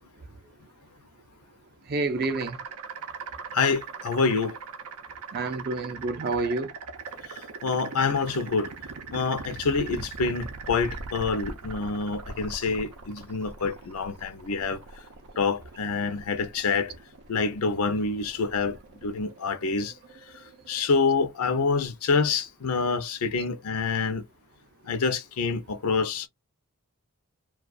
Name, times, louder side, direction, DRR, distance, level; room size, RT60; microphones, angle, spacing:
voice 1, 1.9-2.6 5.3-6.7, right 3 dB, 45° right, 0.5 m, -28 dB
sound 1, 2.2-20.9, right 4 dB, 90° right, 0.6 m, -41 dB
voice 2, 3.5-4.6 7.3-8.7 9.1-14.8 15.4-16.9 17.3-18.8 19.0-19.9 20.7-24.2 24.9-26.3, left 4 dB, 75° left, 0.6 m, -27 dB
2.3 x 2.3 x 2.4 m
head